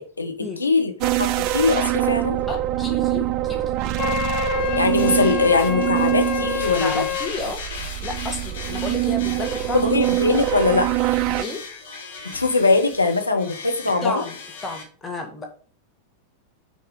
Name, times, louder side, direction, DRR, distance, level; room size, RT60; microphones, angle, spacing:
voice 1, 0.0-2.4 4.7-7.0 9.7-10.9 12.2-14.2, left 3 dB, 80° left, 4 dB, 1.1 m, -21 dB
sound 1, 1.0-11.4, right 16 dB, 40° right, 0.4 m, -24 dB
voice 2, 2.5-4.0 6.7-7.6 8.0-9.9 11.3-11.6 14.0-14.4 14.6-15.6, left 2 dB, 10° left, 2 dB, 1.6 m, -32 dB
Wind instrument woodwind instrument, 4.0-7.3, left 9 dB, 40° left, 0.7 m, -27 dB
sound 2, 4.6-14.8, left 4 dB, 55° left, 1.6 m, -37 dB
6.4 x 4.6 x 5.3 m, 0.41 s
figure-of-eight pair, 90°, 0 cm